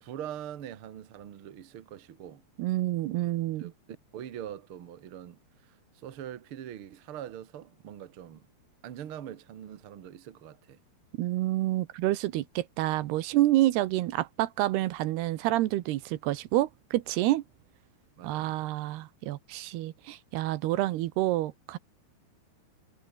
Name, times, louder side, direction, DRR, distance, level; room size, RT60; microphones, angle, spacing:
voice 1, 0.0-2.4 3.1-3.2 3.6-3.7 4.1-8.5 8.8-10.8 18.2-18.7, right 10 dB, 60° right, 1.4 m, -43 dB
voice 2, 2.6-3.7 11.2-17.4 18.2-21.8, right 16 dB, 80° right, 3.0 m, -28 dB
omnidirectional pair, 4.7 m